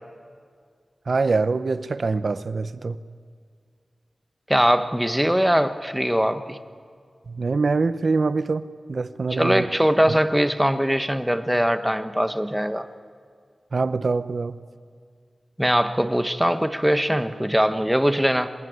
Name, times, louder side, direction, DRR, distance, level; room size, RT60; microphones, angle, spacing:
voice 1, 1.1-3.0 7.3-8.6 8.9-9.7 10.1-10.2 13.7-14.6, right 4 dB, 65° right, 14 dB, 0.8 m, -24 dB
voice 2, 4.5-6.6 9.3-12.9 15.6-18.5, equal, 5° right, 9 dB, 1.3 m, -21 dB
25.0 x 20.5 x 9.5 m, 2.1 s
wide cardioid pair, 75°, 0 cm